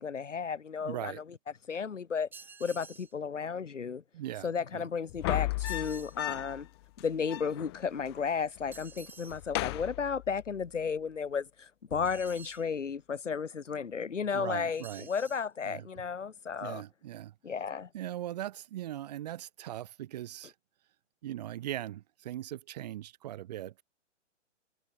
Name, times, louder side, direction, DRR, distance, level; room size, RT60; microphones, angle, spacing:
voice 1, 0.0-1.4 1.7-2.3 2.6-4.0 4.4-6.7 7.0-16.8 17.4-17.9, left 6 dB, 80° left, 6.1 m, -34 dB
voice 2, 0.8-1.2 4.1-4.9 14.3-15.1 15.6-15.8 16.6-17.3 17.9-20.5 21.2-23.8, right 13 dB, 35° right, 2.3 m, -40 dB
sound 1, 2.3-3.1 5.6-6.2 8.7-9.4 12.0-12.7 14.7-15.4, right 5 dB, 5° right, 3.5 m, -51 dB
sound 2, 5.1-6.7 7.0-7.1 7.3-8.3 8.6-8.9 9.2-10.7 11.9-12.3, left 21 dB, 20° left, 1.4 m, -36 dB
hypercardioid pair, 160°, 36 cm